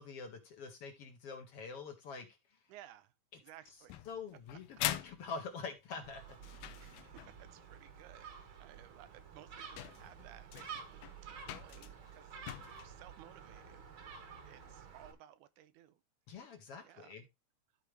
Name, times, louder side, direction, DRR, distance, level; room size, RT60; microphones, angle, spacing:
voice 1, 0.0-2.3 4.1-6.4 16.3-17.3, left 5 dB, 60° left, 1.8 m, -45 dB
voice 2, 2.7-4.0 4.9-5.1 6.8-13.8 14.5-16.0 16.8-17.1, right 12 dB, 80° right, 2.1 m, -58 dB
sound 1, 3.9-7.5 8.8-8.9 9.5-9.6 9.8-12.9, left 13 dB, 75° left, 1.8 m, -43 dB
Gull seagull, 6.0-15.1, right 6 dB, 50° right, 1.8 m, -51 dB
13.5 x 4.6 x 3.3 m
omnidirectional pair, 3.6 m